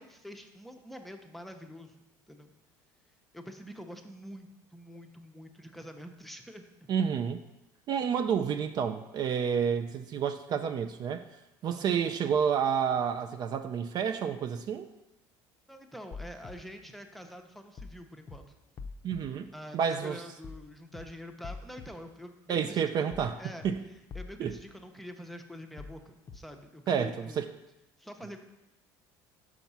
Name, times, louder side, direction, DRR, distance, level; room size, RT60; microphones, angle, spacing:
voice 1, 0.0-1.9 2.3-2.5 3.3-6.9 11.6-11.8 15.7-18.5 19.5-23.7 24.1-27.4 28.0-28.4, equal, ahead, 5 dB, 0.7 m, -46 dB
voice 2, 6.9-7.4 7.9-11.3 11.6-14.9 19.0-19.5 19.7-20.2 22.5-23.4 23.6-23.8 24.4-24.6 26.9-27.5, right 7 dB, 45° right, 9 dB, 0.4 m, -29 dB
sound 1, 16.1-16.5 17.8-18.0 18.3-18.4 18.8-19.2 20.4-20.6 20.9-21.0 21.4-21.9 23.1-23.3 23.6-23.7 24.1-24.5 25.8-26.0 26.3-26.4, left 4 dB, 35° left, 0.5 m, -43 dB
5.9 x 4.7 x 5.5 m, 0.96 s
supercardioid pair, 100°, 9 cm